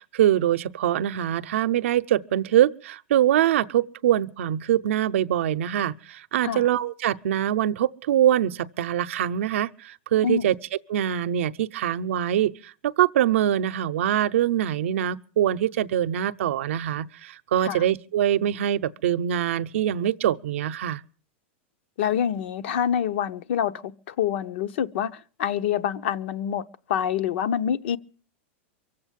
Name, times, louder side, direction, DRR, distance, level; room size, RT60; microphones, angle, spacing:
voice 1, 0.0-10.5 10.9-21.0, right 11 dB, 80° right, 0.7 m, -24 dB
voice 2, 22.0-28.0, left 9 dB, 60° left, 0.8 m, -26 dB
23.5 x 7.9 x 7.4 m
supercardioid pair, 160°, 7 cm